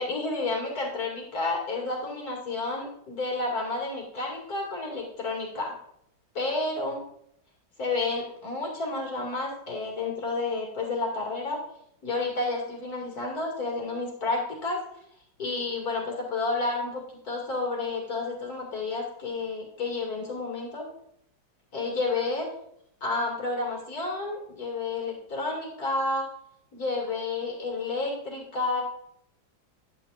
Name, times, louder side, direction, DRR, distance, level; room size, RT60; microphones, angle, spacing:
voice 1, 0.0-5.7 6.3-7.0 7.8-11.6 12.0-14.8 15.4-20.9 21.7-22.5 23.0-26.3 26.7-28.8, left 3 dB, 50° left, -1 dB, 2.9 m, -30 dB
10.5 x 9.2 x 2.5 m, 0.72 s
omnidirectional pair, 2.0 m